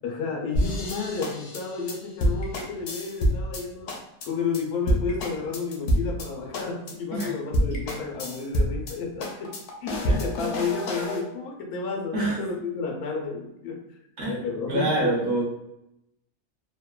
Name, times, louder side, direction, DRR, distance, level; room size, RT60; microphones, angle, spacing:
voice 1, 0.0-3.9 4.2-9.5 9.8-14.0 14.2-15.1, left 4 dB, 90° left, 1 dB, 1.1 m, -31 dB
sound 1, 0.5-3.6 3.9-4.3 4.5-4.6 4.9-6.3 6.5-6.9 7.2-7.3 7.5-8.9 9.2-11.2, equal, 65° left, 0.8 m, -27 dB
voice 2, 14.7-15.4, right 2 dB, 60° right, -4 dB, 0.8 m, -25 dB
3.0 x 2.1 x 2.2 m, 0.83 s
omnidirectional pair, 1.6 m